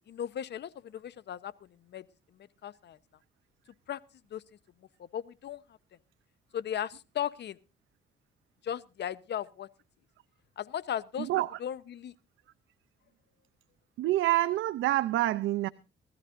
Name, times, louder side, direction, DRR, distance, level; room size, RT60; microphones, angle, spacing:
voice 1, 0.1-2.0 2.6-3.0 3.9-4.0 4.3-4.4 5.1-5.6 6.5-7.6 8.6-9.7 10.6-11.3 11.6-12.1, left 10 dB, 60° left, 1.0 m, -36 dB
voice 2, 11.2-11.6 14.0-15.7, right 15 dB, 80° right, 0.6 m, -27 dB
20.0 x 14.0 x 2.6 m
cardioid pair, 90°, 20 cm